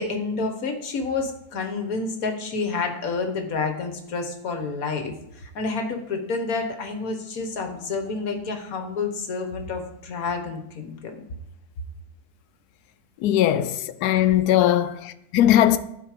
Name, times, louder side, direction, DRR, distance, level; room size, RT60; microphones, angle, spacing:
voice 1, 0.0-11.2 14.3-14.4 14.9-15.0, left 4 dB, 65° left, 1.6 m, -29 dB
voice 2, 13.2-15.8, left 12 dB, 80° left, 1.1 m, -19 dB
12.0 x 4.5 x 5.0 m
omnidirectional pair, 1.6 m